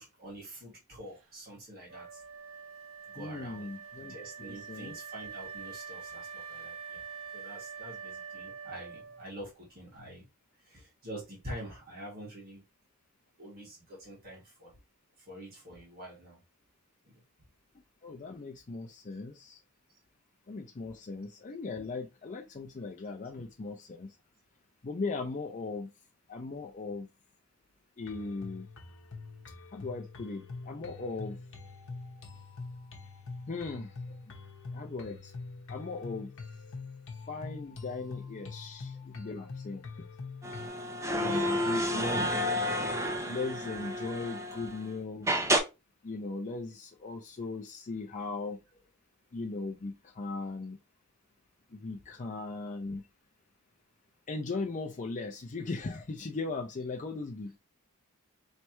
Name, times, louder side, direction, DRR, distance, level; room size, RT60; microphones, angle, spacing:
voice 1, 0.0-2.2 3.1-3.7 4.1-7.0 7.3-10.2 10.6-12.6 13.4-14.7 15.2-16.4 17.0-17.1 20.8-20.9 41.2-41.7, right 1 dB, 45° right, 1.8 m, -46 dB
Wind instrument woodwind instrument, 1.9-9.5, right 6 dB, 65° right, 1.3 m, -45 dB
voice 2, 3.2-5.0 18.0-19.6 20.5-24.2 24.8-25.9 26.3-27.1 28.0-28.7 29.7-31.4 33.5-33.9 34.7-35.3 35.7-36.3 37.3-39.9 41.1-42.3 43.3-45.3 46.0-48.8 49.3-50.8 51.7-53.0 54.3-57.6, left 3 dB, 35° left, 0.5 m, -38 dB
sound 1, 28.0-40.7, left 4 dB, 60° left, 1.0 m, -44 dB
sound 2, 40.4-44.8 45.3-45.6, equal, 15° right, 0.6 m, -30 dB
4.4 x 3.2 x 3.0 m
head